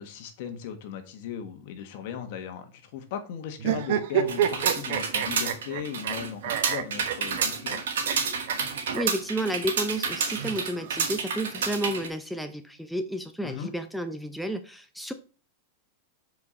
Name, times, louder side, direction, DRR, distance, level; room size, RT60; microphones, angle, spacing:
voice 1, 0.0-7.8 13.4-13.7, left 8 dB, 60° left, 1.5 m, -37 dB
sound 1, 3.6-6.1 6.4-7.8 8.1-8.2 8.5-8.6 8.9-9.0 10.1-11.1, right 10 dB, 65° right, 0.9 m, -29 dB
sound 2, 4.3-12.1, right 6 dB, 85° right, 2.0 m, -29 dB
voice 2, 8.9-15.1, right 1 dB, ahead, 0.6 m, -31 dB
7.2 x 4.8 x 4.2 m
supercardioid pair, 130°, 0 cm